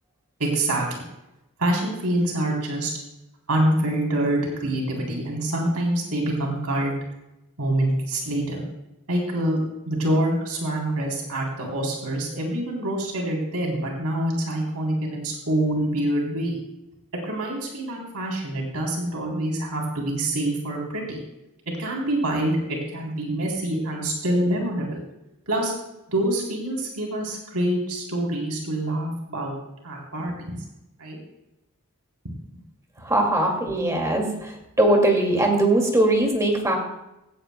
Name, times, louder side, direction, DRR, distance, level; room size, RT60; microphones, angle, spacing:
voice 1, 0.4-1.0 1.6-2.9 3.5-6.9 7.6-8.6 9.1-16.6 17.2-21.2 21.8-25.0 25.5-25.7 26.1-29.5 29.8-30.6 31.0-31.2 32.2-32.3, right 1 dB, 90° right, -1 dB, 3.5 m, -26 dB
voice 2, 33.0-36.8, right 1 dB, 15° right, 2 dB, 2.3 m, -21 dB
16.5 x 16.0 x 2.2 m, 0.91 s
head